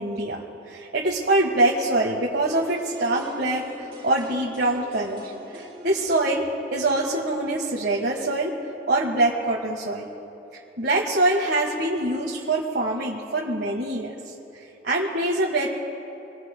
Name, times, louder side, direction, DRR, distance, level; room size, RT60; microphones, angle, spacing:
voice 1, 0.0-8.5 8.9-10.1 10.8-14.1 14.8-15.7, right 2 dB, 80° right, -3 dB, 1.5 m, -24 dB
sound 1, 2.4-8.3 8.6-8.7, equal, 30° right, 3.5 m, -44 dB
27.0 x 20.5 x 2.2 m, 2.9 s
head